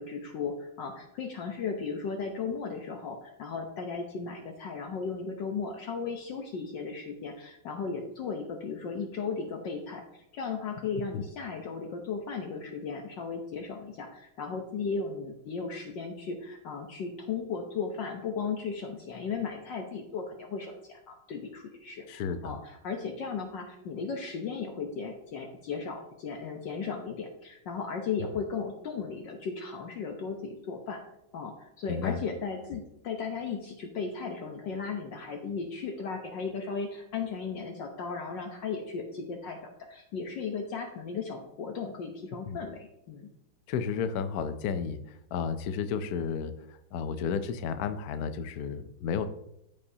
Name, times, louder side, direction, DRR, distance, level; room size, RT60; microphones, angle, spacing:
voice 1, 0.0-10.0 10.3-31.0 31.3-43.3, left 5 dB, 65° left, 3 dB, 1.4 m, -36 dB
voice 2, 22.1-22.6 31.9-32.2 42.5-42.6 43.7-49.2, left 6 dB, 85° left, 10 dB, 0.8 m, -32 dB
14.0 x 5.4 x 2.8 m, 0.80 s
omnidirectional pair, 2.3 m